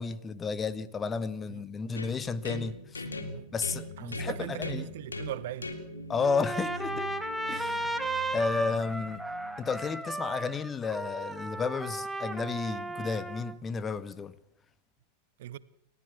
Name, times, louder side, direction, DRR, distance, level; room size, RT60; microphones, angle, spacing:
voice 1, 0.0-3.0 3.5-4.9 6.1-7.1 7.5-7.9 8.3-9.2 9.6-14.3, left 5 dB, 20° left, 1.2 m, -32 dB
sound 1, 2.0-9.7, left 2 dB, 75° left, 2.9 m, -41 dB
voice 2, 4.0-5.8 15.4-15.6, right 13 dB, 55° right, 1.0 m, -39 dB
Trumpet, 6.2-13.6, right 2 dB, 5° right, 1.6 m, -35 dB
29.5 x 14.0 x 7.2 m
figure-of-eight pair, 90°, 0 cm